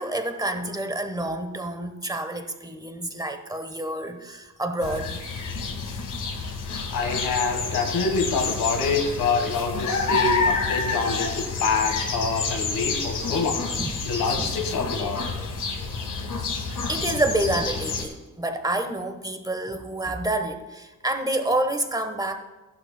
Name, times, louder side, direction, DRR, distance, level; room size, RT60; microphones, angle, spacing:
voice 1, 0.0-5.2 13.8-13.9 14.4-14.5 16.9-22.4, right 1 dB, 10° right, 7 dB, 1.1 m, -28 dB
sound 1, 4.8-18.0, left 4 dB, 60° left, 1.7 m, -29 dB
voice 2, 6.9-13.6 14.0-15.2, left 4 dB, 80° left, 5 dB, 1.5 m, -26 dB
15.0 x 11.5 x 2.2 m, 1.2 s
cardioid pair, 85°, 34 cm